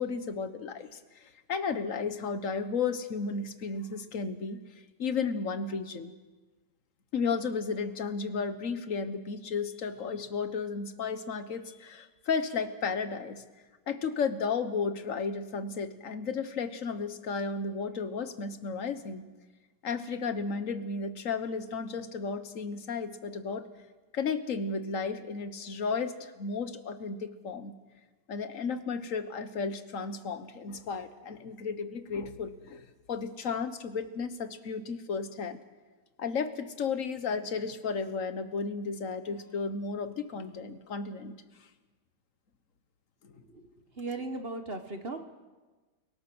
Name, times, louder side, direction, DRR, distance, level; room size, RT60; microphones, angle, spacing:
voice 1, 0.0-4.6 5.0-6.1 7.1-13.4 13.9-19.3 19.8-23.7 24.1-27.7 28.3-35.6 36.2-41.3 43.2-43.3, left 5 dB, 45° left, 10 dB, 1.3 m, -33 dB
voice 2, 44.0-45.2, right 2 dB, 35° right, 7 dB, 1.1 m, -37 dB
29.5 x 18.0 x 6.2 m, 1.3 s
omnidirectional pair, 2.4 m